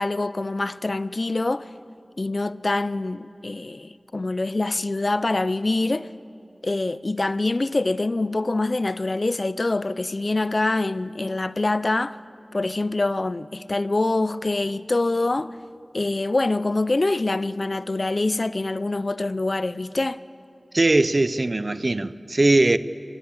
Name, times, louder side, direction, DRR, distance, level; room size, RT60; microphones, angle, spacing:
voice 1, 0.0-1.7 2.2-6.1 6.6-12.2 12.5-15.6 15.9-20.2, left 2 dB, 55° left, 0.5 m, -25 dB
voice 2, 20.7-22.8, right 2 dB, 50° right, 0.7 m, -20 dB
24.0 x 20.5 x 8.7 m
wide cardioid pair, 50°, 0 cm